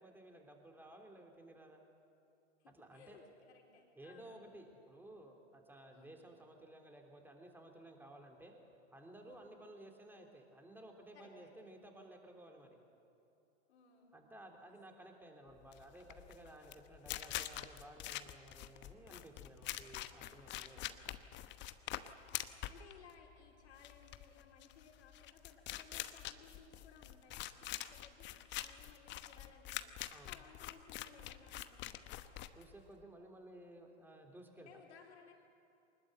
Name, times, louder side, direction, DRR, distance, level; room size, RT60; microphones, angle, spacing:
voice 1, 0.0-1.8 2.7-3.2 4.0-8.5 8.9-12.8 14.1-20.9 30.1-30.4 32.5-34.8, right 1 dB, 5° right, 3 dB, 3.3 m, -56 dB
voice 2, 2.6-4.6 5.9-6.2 9.2-9.6 11.1-11.7 13.7-14.2 14.6-14.8 15.4-15.5 20.6-21.0 21.9-32.0 34.6-35.3, left 6 dB, 70° left, 1 dB, 4.2 m, -62 dB
sound 1, 15.6-33.0, left 14 dB, 30° left, 1.0 m, -45 dB
23.5 x 20.5 x 8.0 m, 2.8 s
hypercardioid pair, 105°, 35 cm